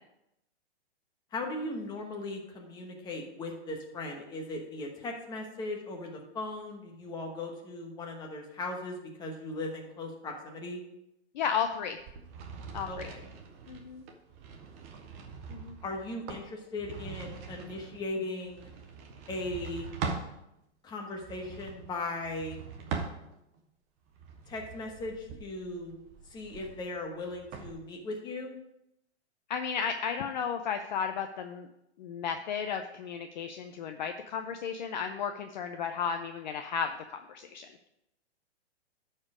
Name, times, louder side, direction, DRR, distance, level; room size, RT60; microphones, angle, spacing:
voice 1, 1.3-10.8 12.9-13.2 15.8-18.7 19.3-19.9 20.8-22.6 24.5-26.0 26.3-28.5, left 2 dB, 10° left, 2 dB, 1.2 m, -38 dB
voice 2, 11.3-12.0 12.7-13.1 13.7-14.0 15.5-15.8 29.5-31.7 32.0-37.7, left 7 dB, 40° left, 6 dB, 0.6 m, -34 dB
sound 1, 12.0-20.3 21.1-23.6 24.1-27.7, right 5 dB, 15° right, 0.4 m, -42 dB
11.5 x 4.5 x 4.9 m, 0.85 s
hypercardioid pair, 155°, 34 cm